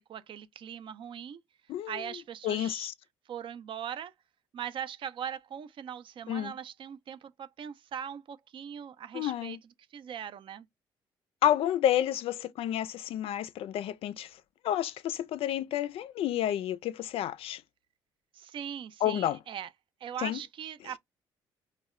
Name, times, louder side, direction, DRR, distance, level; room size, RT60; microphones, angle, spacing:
voice 1, 0.1-1.4 1.9-2.9 3.3-4.1 4.5-9.6 9.9-10.7 18.3-19.7 20.0-21.0, right 8 dB, 55° right, 0.4 m, -40 dB
voice 2, 1.7-2.0 2.4-2.9 6.3-6.5 9.1-9.6 11.4-14.3 14.6-17.6 19.0-19.4 20.2-20.4, left 11 dB, 70° left, 0.4 m, -30 dB
2.1 x 2.0 x 3.6 m
supercardioid pair, 70°, 10 cm